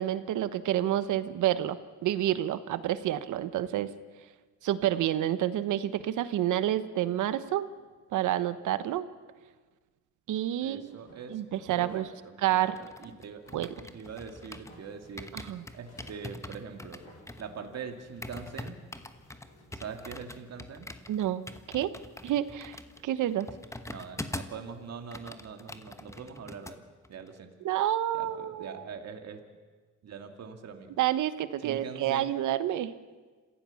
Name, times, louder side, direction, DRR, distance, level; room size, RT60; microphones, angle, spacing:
voice 1, 0.0-1.8 2.0-3.9 4.6-7.7 8.1-9.1 10.3-11.0 11.3-12.1 12.4-12.8 13.5-13.7 15.3-15.6 21.1-21.4 21.7-21.9 22.2-23.5 27.6-28.7 31.0-32.9, right 12 dB, 80° right, 13 dB, 1.1 m, -29 dB
voice 2, 10.6-15.3 15.7-17.0 17.4-18.8 19.7-20.9 23.9-26.8 27.1-27.5 28.1-29.4 30.0-30.9 31.6-32.4, right 6 dB, 60° right, 5 dB, 2.5 m, -43 dB
sound 1, 10.9-12.4 13.4-20.6, left 1 dB, 55° left, 7.9 m, -58 dB
sound 2, 12.5-14.8 15.2-24.6 24.9-26.8 27.0-27.3, left 1 dB, 10° left, 1.2 m, -44 dB
27.0 x 15.5 x 7.2 m, 1.4 s
cardioid pair, 90°, 30 cm